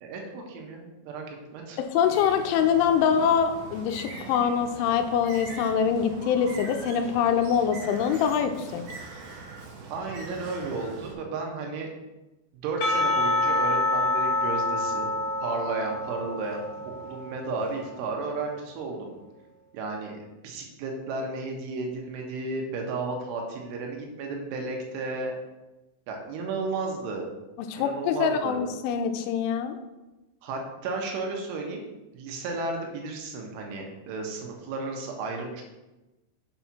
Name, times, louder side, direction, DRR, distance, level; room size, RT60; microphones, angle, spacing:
voice 1, 0.0-1.8 9.9-11.9 12.6-15.1 15.4-19.1 19.7-25.3 26.1-27.3 27.8-28.6 30.4-31.9 32.1-35.6, right 3 dB, 85° right, 1 dB, 3.8 m, -33 dB
voice 2, 1.8-8.8 27.6-29.8, left 7 dB, 85° left, 7 dB, 3.1 m, -24 dB
Bird, 2.0-11.1, right 4 dB, 70° right, 2.0 m, -42 dB
Percussion / Church bell, 12.8-18.0, left 2 dB, 65° left, 2.1 m, -27 dB
7.9 x 4.4 x 5.9 m, 1.0 s
omnidirectional pair, 5.5 m